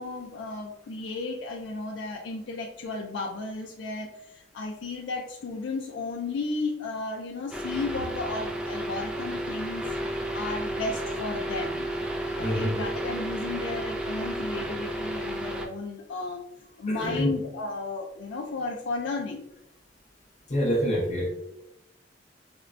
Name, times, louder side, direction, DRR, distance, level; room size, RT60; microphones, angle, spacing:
voice 1, 0.0-9.9 10.3-11.9 12.3-16.4 16.8-19.5, left 3 dB, 80° left, 0 dB, 0.4 m, -34 dB
sound 1, 7.5-15.7, right 1 dB, 5° right, 0.3 m, -32 dB
voice 2, 12.4-12.8 16.9-17.3 20.5-21.3, equal, 40° left, -3 dB, 0.8 m, -26 dB
4.4 x 2.1 x 2.4 m, 0.86 s
head